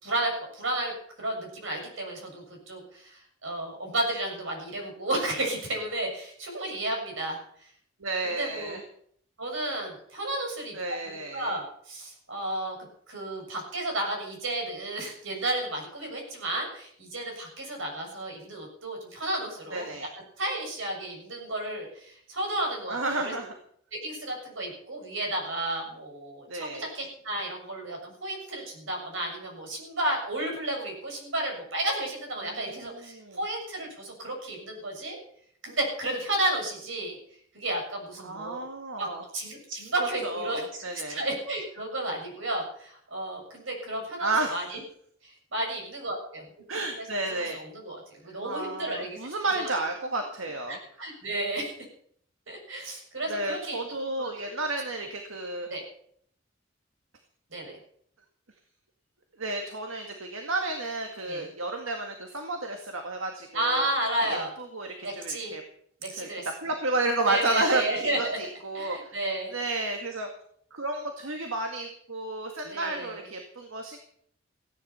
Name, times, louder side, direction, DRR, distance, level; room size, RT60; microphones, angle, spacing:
voice 1, 0.0-0.9 1.2-7.4 8.2-8.8 9.4-10.8 11.3-12.8 13.1-19.8 20.4-23.3 23.9-35.2 35.6-37.2 37.5-38.6 39.0-39.1 39.3-44.8 45.2-46.5 47.0-49.2 49.5-49.8 50.7-51.7 52.5-53.8 54.2-54.3 55.7-55.8 57.5-57.8 61.3-61.5 63.5-64.5 65.0-65.5 66.0-66.5 67.2-68.4 68.7-69.6 72.7-73.3, right 1 dB, 70° right, 2 dB, 6.8 m, -32 dB
voice 2, 8.0-8.8 10.7-11.5 19.7-20.1 22.9-23.6 26.5-26.9 32.4-33.4 38.2-39.2 40.2-41.2 44.2-44.6 46.7-47.6 48.4-50.8 53.3-55.7 59.4-63.9 64.2-65.6 66.2-66.3 66.6-69.1 69.5-70.3 70.7-74.0, right 2 dB, 85° right, 4 dB, 2.0 m, -32 dB
16.0 x 10.5 x 7.0 m, 0.64 s
head